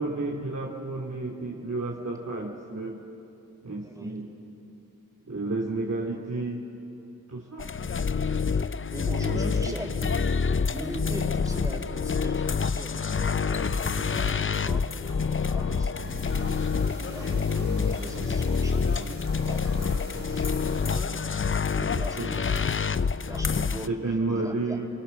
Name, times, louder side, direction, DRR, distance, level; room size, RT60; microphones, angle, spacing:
voice 1, 0.0-3.0 3.6-4.3 5.2-6.7 7.3-7.7 9.2-9.4 9.7-9.8 21.8-22.5 23.9-24.9, right 2 dB, 50° right, -2 dB, 2.6 m, -31 dB
voice 2, 3.7-4.2 8.9-10.1 10.7-13.0 13.6-14.9 15.5-21.2 21.9-22.5 23.3-24.0 24.3-24.8, right 1 dB, 10° right, 2 dB, 4.4 m, -40 dB
sound 1, 7.6-23.9, left 5 dB, 35° left, 0.6 m, -27 dB
sound 2, 13.0-14.8 15.1-16.9 17.1-19.0 19.2-20.9, left 2 dB, 65° left, 4.0 m, -41 dB
sound 3, 16.0-21.0, right 2 dB, 30° right, 4.8 m, -50 dB
26.0 x 23.5 x 7.1 m, 2.8 s
cardioid pair, 45°, 34 cm